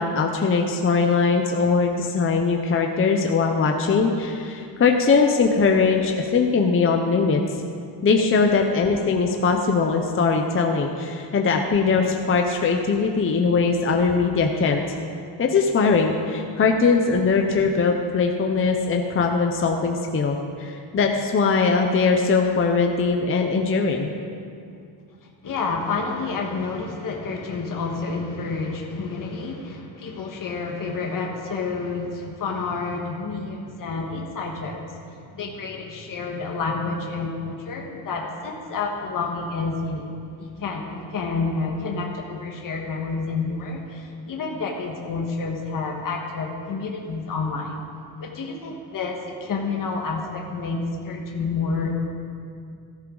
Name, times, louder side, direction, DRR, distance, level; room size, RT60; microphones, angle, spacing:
voice 1, 0.0-7.4 8.0-15.0 15.4-24.1, left 4 dB, 25° left, 3 dB, 0.7 m, -21 dB
voice 2, 25.2-34.8 35.1-47.8 48.2-51.9, left 4 dB, 45° left, 0 dB, 1.5 m, -29 dB
16.0 x 14.0 x 3.9 m, 2.4 s
cardioid pair, 175°, 47 cm